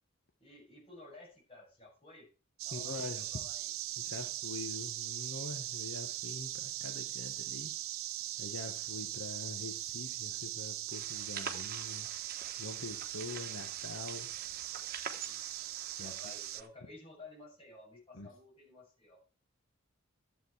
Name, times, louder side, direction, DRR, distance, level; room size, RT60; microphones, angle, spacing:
voice 1, 0.4-2.3 2.7-3.7 15.2-19.2, left 2 dB, 25° left, -3 dB, 7.1 m, -54 dB
sound 1, 2.6-16.6, right 14 dB, 70° right, 0.6 m, -40 dB
voice 2, 2.7-3.4 4.0-7.8 8.4-14.3 16.0-16.1 18.1-18.3, left 2 dB, 70° left, 5 dB, 1.3 m, -44 dB
sound 2, 10.9-16.7, right 6 dB, 45° right, 1.3 m, -47 dB
12.0 x 7.8 x 4.8 m, 0.36 s
head